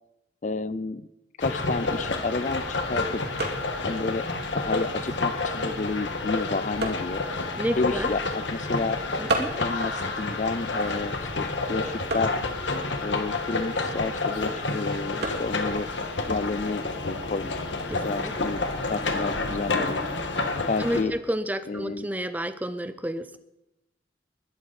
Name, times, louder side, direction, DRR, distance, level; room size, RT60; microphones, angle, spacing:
voice 1, 0.4-1.1 1.4-3.2 3.8-4.3 4.5-7.2 7.8-9.0 9.6-12.4 13.0-15.9 16.3-17.6 18.0-18.6 18.9-20.0 20.7-21.1 21.7-22.1, left 3 dB, 40° left, 16 dB, 0.5 m, -30 dB
sound 1, 1.4-21.0, left 3 dB, 75° left, 1.7 m, -29 dB
sound 2, 1.9-17.4, right 2 dB, 60° right, 2.3 m, -38 dB
voice 2, 7.6-8.1 9.2-9.5 17.9-18.3 20.8-23.4, equal, 10° right, 12 dB, 0.6 m, -30 dB
20.5 x 12.0 x 4.2 m, 0.93 s
head